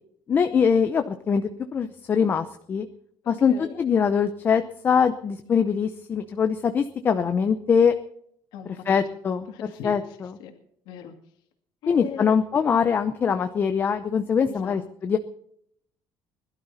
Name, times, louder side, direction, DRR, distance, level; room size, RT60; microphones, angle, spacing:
voice 1, 0.3-2.9 3.3-7.9 8.9-9.5 9.8-10.3 11.9-15.2, left 6 dB, 25° left, 8 dB, 0.7 m, -23 dB
voice 2, 3.2-3.8 5.5-5.7 8.5-9.0 9.5-10.5 10.9-11.2 11.8-12.3 14.5-15.1, left 9 dB, 70° left, 4 dB, 2.3 m, -40 dB
21.0 x 12.0 x 4.2 m, 0.69 s
cardioid pair, 180°, 8 cm